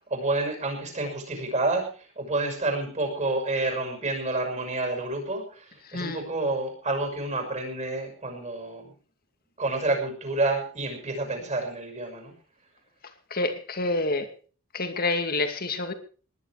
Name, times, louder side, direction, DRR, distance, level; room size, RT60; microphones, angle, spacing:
voice 1, 0.1-8.9 9.6-12.3, right 2 dB, 35° right, 6.1 m, -29 dB
voice 2, 13.3-14.3 14.7-15.9, left 2 dB, 45° left, 2.3 m, -27 dB
19.5 x 11.0 x 4.9 m
head